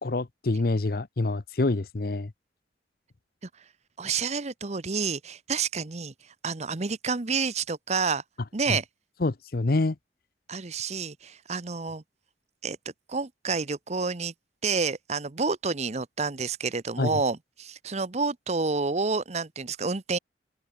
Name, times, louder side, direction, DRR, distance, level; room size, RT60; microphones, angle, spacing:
voice 1, 0.0-2.3 8.7-8.8 9.2-10.0 17.0-17.2, left 2 dB, 55° left, 0.8 m, -26 dB
voice 2, 4.0-6.1 6.4-8.2 8.5-8.8 10.5-12.0 12.6-12.8 13.1-14.3 14.6-20.2, right 4 dB, 40° right, 0.9 m, -29 dB
open air
head